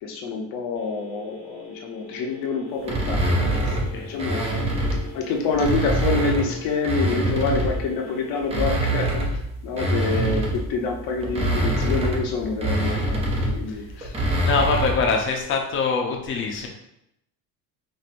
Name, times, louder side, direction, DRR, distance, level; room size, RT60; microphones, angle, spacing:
voice 1, 0.0-9.2 9.6-14.2, left 4 dB, 75° left, 1 dB, 0.8 m, -27 dB
Telephone, 0.7-8.7, left 5 dB, 75° right, 0.9 m, -43 dB
sound 1, 2.8-5.1 5.5-7.9 8.3-15.1, right 1 dB, 15° right, 0.5 m, -25 dB
voice 2, 3.6-4.2 9.8-10.0 13.0-13.1 13.7-13.9 14.4-16.7, left 4 dB, 35° left, 1 dB, 0.6 m, -25 dB
4.5 x 2.6 x 2.5 m, 0.80 s
cardioid pair, 155°, 36 cm